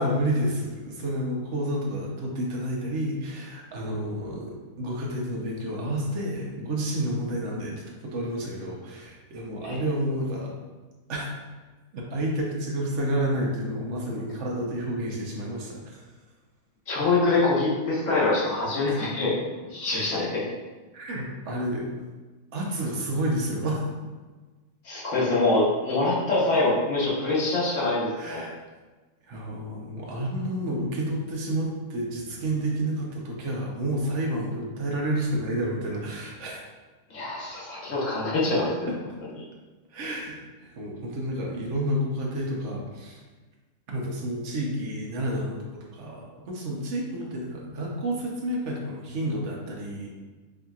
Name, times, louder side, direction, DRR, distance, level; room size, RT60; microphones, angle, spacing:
voice 1, 0.0-10.5 11.1-11.3 11.9-16.1 18.9-19.0 20.9-21.9 22.5-23.8 28.2-28.5 29.3-36.6 38.9-39.0 39.9-43.2 43.9-45.6 45.9-50.1, right 1 dB, 60° right, -2 dB, 1.0 m, -30 dB
voice 2, 16.9-19.4 19.7-20.4 24.8-28.4 37.1-38.9, left 2 dB, 60° left, -5 dB, 1.3 m, -24 dB
4.7 x 2.7 x 2.3 m, 1.3 s
omnidirectional pair, 1.5 m